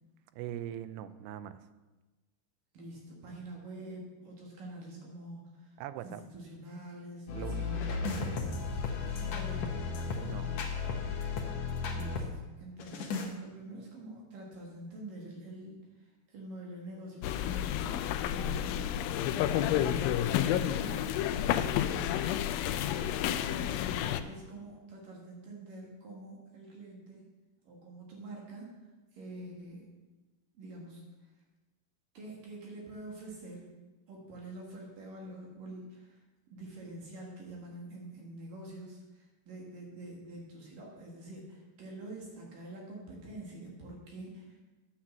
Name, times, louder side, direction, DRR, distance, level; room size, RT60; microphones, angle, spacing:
voice 1, 0.3-1.6 5.8-6.2 7.3-7.6 10.2-10.5, right 11 dB, 85° right, 12 dB, 2.7 m, -41 dB
voice 2, 2.7-5.8 6.0-8.7 9.1-9.9 11.9-12.3 12.6-18.0 18.3-18.9 19.7-21.2 21.5-22.2 22.7-27.3 27.6-28.7 29.1-29.9 30.5-31.1 32.1-33.7 34.1-36.2 36.5-44.6, right 1 dB, 60° right, -2 dB, 3.2 m, -46 dB
sound 1, 7.3-12.3 12.8-13.3, left 4 dB, 65° left, 1.7 m, -34 dB
sound 2, 17.2-24.2, left 11 dB, 85° left, 2.0 m, -30 dB
10.0 x 7.3 x 7.3 m, 1.2 s
omnidirectional pair, 4.6 m